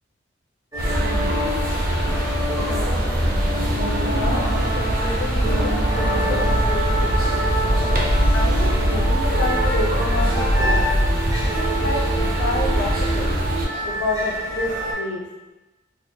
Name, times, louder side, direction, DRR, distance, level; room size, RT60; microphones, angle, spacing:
sound 1, 0.7-14.9, equal, 20° right, 1.0 m, -28 dB
sound 2, 0.8-13.7, right 1 dB, 50° right, 0.6 m, -22 dB
sound 3, 2.3-7.9, equal, 5° left, 0.6 m, -34 dB
voice 1, 2.6-3.1 3.8-7.1 8.3-10.9 11.5-12.0 12.4-13.3 13.8-15.3, left 2 dB, 65° left, -1 dB, 0.5 m, -29 dB
4.1 x 3.0 x 2.2 m, 1.1 s
head